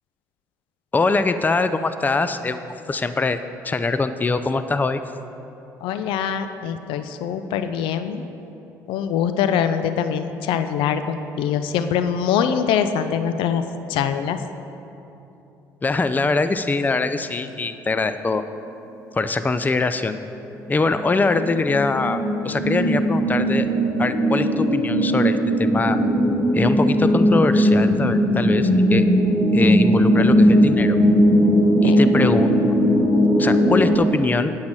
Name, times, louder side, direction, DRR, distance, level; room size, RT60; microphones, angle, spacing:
voice 1, 0.9-2.6 2.9-3.4 3.6-5.0 15.8-18.4 19.1-20.2 20.7-23.7 24.0-26.0 26.5-29.1 29.5-31.0 31.8-32.5 33.4-34.5, left 3 dB, 20° left, 11 dB, 0.5 m, -22 dB
voice 2, 5.8-8.2 8.9-13.6 13.9-14.4 31.8-32.0, left 8 dB, 70° left, 10 dB, 0.5 m, -23 dB
sound 1, 20.5-34.0, equal, 40° left, 1.3 m, -18 dB
8.6 x 5.7 x 7.6 m, 3.0 s
hypercardioid pair, 55°, 9 cm